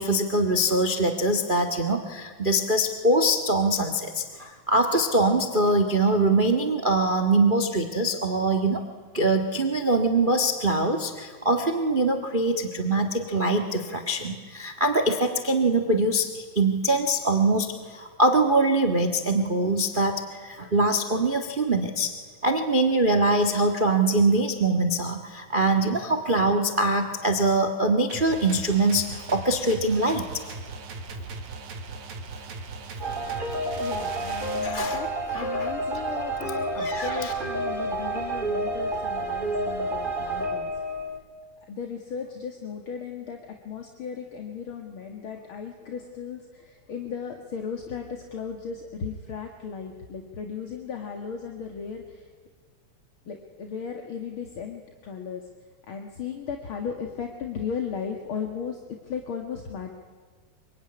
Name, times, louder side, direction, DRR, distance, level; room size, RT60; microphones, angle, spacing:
voice 1, 0.0-8.8 9.1-22.1 22.4-30.2 33.1-33.2 34.6-35.0 35.4-35.7 36.8-37.3, right 2 dB, 35° right, 8 dB, 0.7 m, -23 dB
sound 1, 28.1-34.7, right 3 dB, 60° right, 3.3 m, -39 dB
sound 2, 33.0-41.2, right 1 dB, 15° right, 2.6 m, -29 dB
voice 2, 33.8-40.7 41.6-52.3 53.3-55.5 55.9-59.9, left 6 dB, 45° left, 4 dB, 2.2 m, -36 dB
25.5 x 24.0 x 9.9 m, 1.5 s
omnidirectional pair, 4.0 m